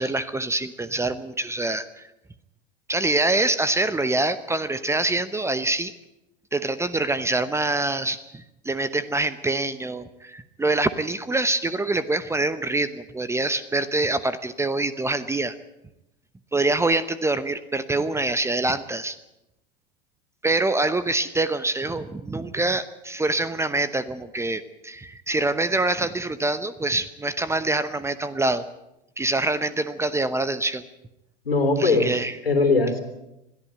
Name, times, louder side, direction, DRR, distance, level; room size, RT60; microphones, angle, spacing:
voice 1, 0.0-2.0 2.9-5.9 6.5-15.6 16.5-19.2 20.4-28.6 29.2-30.8 31.8-32.4, right 2 dB, 10° right, 15 dB, 0.9 m, -25 dB
voice 2, 31.4-33.0, left 3 dB, 80° left, 8 dB, 3.5 m, -21 dB
21.5 x 14.0 x 8.9 m, 0.90 s
figure-of-eight pair, 85°, 29 cm